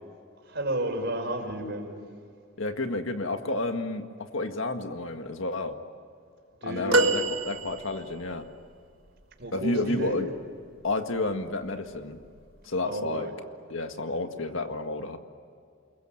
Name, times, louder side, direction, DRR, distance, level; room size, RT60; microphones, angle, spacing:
voice 1, 0.4-2.0 6.6-7.2 9.4-10.2 12.8-13.3, right 1 dB, 55° right, 3 dB, 5.5 m, -32 dB
voice 2, 2.6-5.8 6.6-8.5 9.5-10.3 10.8-12.2 12.6-13.3 13.7-15.2, left 2 dB, 70° left, 6 dB, 1.8 m, -31 dB
sound 1, 6.9-8.3 10.7-10.9 12.2-12.3, right 2 dB, 70° right, 1.5 m, -26 dB
29.5 x 22.0 x 9.2 m, 2.3 s
head